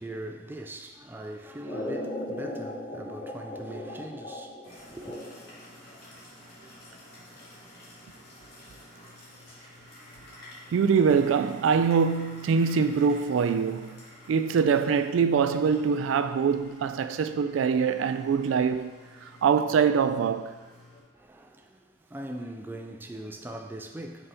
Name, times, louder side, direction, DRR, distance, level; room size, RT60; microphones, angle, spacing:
voice 1, 0.0-5.2 21.1-24.3, right 1 dB, 10° right, 0.4 m, -41 dB
sound 1, 1.6-5.7, left 1 dB, 30° left, 0.7 m, -37 dB
sound 2, 4.6-21.0, left 1 dB, 55° left, 1.6 m, -50 dB
voice 2, 10.7-14.0 14.3-18.9 19.2-20.6, right 6 dB, 85° right, 0.3 m, -24 dB
5.5 x 4.1 x 4.2 m
head